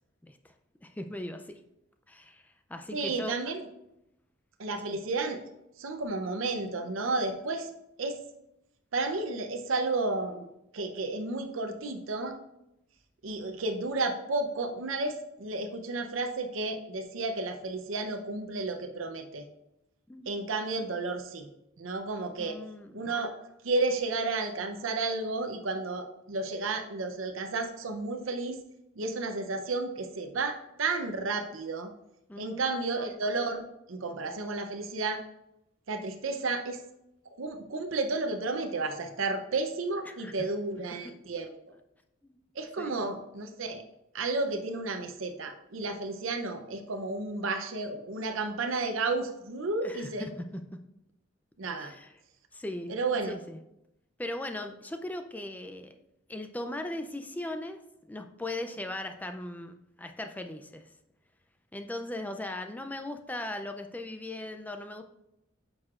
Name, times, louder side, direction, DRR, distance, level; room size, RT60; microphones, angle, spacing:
voice 1, 0.8-1.6 2.1-2.4 2.7-3.3 4.8-5.0 20.1-20.3 22.4-23.1 32.3-32.8 40.1-40.3 42.2-42.3 42.8-43.0 49.8-50.6 51.8-52.1 52.5-52.9 53.3-53.6 54.2-55.9 56.3-57.8 58.1-60.8 61.7-65.0, left 1 dB, 10° left, 7 dB, 0.4 m, -38 dB
voice 2, 2.9-3.7 4.6-5.4 5.8-7.7 8.0-8.2 8.9-10.5 10.7-12.3 13.2-19.4 20.3-21.5 21.8-22.6 22.9-23.3 23.6-28.6 29.0-31.9 32.4-35.2 35.9-36.8 37.4-41.5 42.5-43.8 44.1-50.3 51.6-51.9 52.9-53.3, right 3 dB, 85° right, 6 dB, 0.7 m, -32 dB
9.3 x 6.3 x 2.4 m, 0.86 s
head